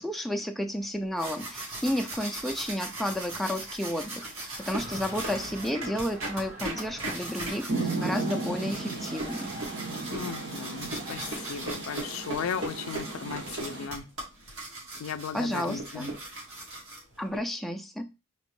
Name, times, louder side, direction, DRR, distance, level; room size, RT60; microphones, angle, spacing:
voice 1, 0.0-9.6 15.3-16.1 17.2-18.1, equal, ahead, 0.4 m, -32 dB
sound 1, 0.9-17.4, right 2 dB, 90° right, 1.8 m, -39 dB
sound 2, 4.6-11.4, right 1 dB, 35° right, 0.9 m, -45 dB
Rain, 7.7-13.9, right 3 dB, 60° right, 1.9 m, -35 dB
voice 2, 10.1-14.1 15.0-16.1, left 7 dB, 80° left, 0.4 m, -36 dB
4.2 x 3.0 x 3.1 m
head